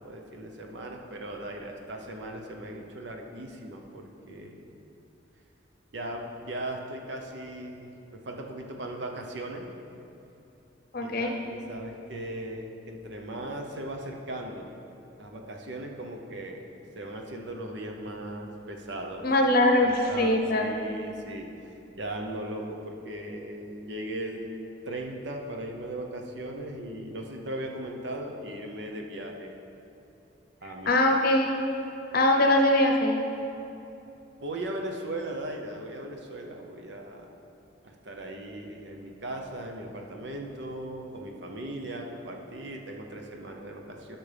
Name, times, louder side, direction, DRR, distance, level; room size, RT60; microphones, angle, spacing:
voice 1, 0.0-4.7 5.9-9.7 11.0-14.7 15.2-16.7 16.9-19.3 19.6-21.5 22.0-29.5 30.6-30.9 34.4-37.3 37.8-44.2, right 1 dB, 70° right, 2 dB, 0.8 m, -38 dB
voice 2, 10.9-11.3 19.2-20.7 30.9-31.5 32.1-33.2, left 1 dB, 50° left, 2 dB, 0.8 m, -22 dB
12.0 x 5.9 x 3.4 m, 2.8 s
head